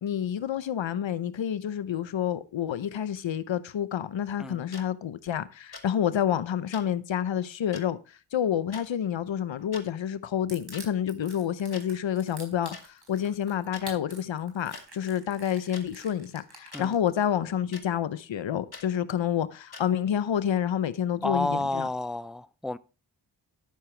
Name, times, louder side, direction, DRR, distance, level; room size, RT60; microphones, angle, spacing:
voice 1, 0.0-8.0 8.3-21.9, left 9 dB, 80° left, 0.7 m, -29 dB
sound 1, 4.7-4.8 5.7-5.9 6.7-6.8 7.7-7.8 8.7-8.9 9.6-9.9 10.7-10.8 11.7-11.8 12.7-12.8 13.7-13.8 14.7-14.8 15.7-15.9 16.7-16.9 17.7-17.8 18.7-18.9 19.7-19.8, left 4 dB, 55° left, 1.7 m, -43 dB
Crushing, 10.5-17.2, right 3 dB, 60° right, 4.4 m, -47 dB
voice 2, 21.2-22.8, left 2 dB, ahead, 0.5 m, -30 dB
12.5 x 6.8 x 3.2 m
cardioid pair, 45°, 44 cm